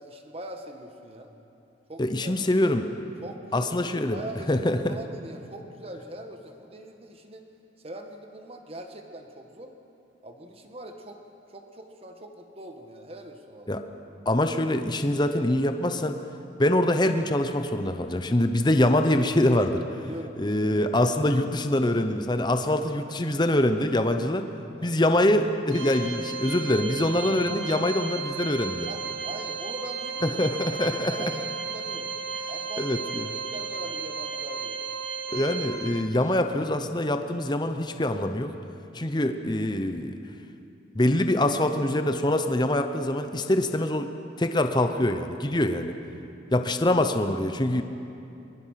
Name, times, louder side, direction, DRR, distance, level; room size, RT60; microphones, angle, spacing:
voice 1, 0.0-1.3 1.9-2.7 3.2-7.5 7.8-9.7 10.2-11.2 11.5-13.8 20.0-20.6 23.1-23.2 24.8-25.0 27.5-27.9 28.9-30.4 30.8-32.1 32.5-34.9 38.9-39.2, right 1 dB, 35° right, 4 dB, 1.7 m, -42 dB
voice 2, 2.0-2.9 3.5-4.2 4.5-5.0 13.7-13.8 14.3-16.2 16.6-19.8 20.4-24.5 24.8-28.9 30.2-31.3 32.8-33.3 35.3-38.5 38.9-40.2 40.9-44.1 44.4-45.9 46.5-47.8, left 1 dB, 25° left, 7 dB, 0.9 m, -24 dB
Organ, 25.7-36.4, right 5 dB, 85° right, 1.8 m, -34 dB
23.0 x 22.5 x 5.9 m, 2.8 s
head